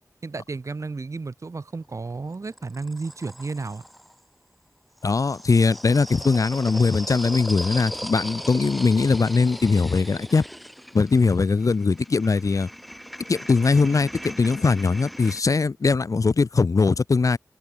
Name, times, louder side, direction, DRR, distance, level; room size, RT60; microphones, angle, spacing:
voice 1, 0.2-3.8, right 3 dB, 55° right, 0.6 m, -32 dB
sound 1, 1.7-4.1 5.0-15.4, equal, ahead, 0.7 m, -38 dB
voice 2, 5.0-10.4 10.9-12.7 13.3-17.4, left 4 dB, 60° left, 0.6 m, -21 dB
wide cardioid pair, 50°, 6 cm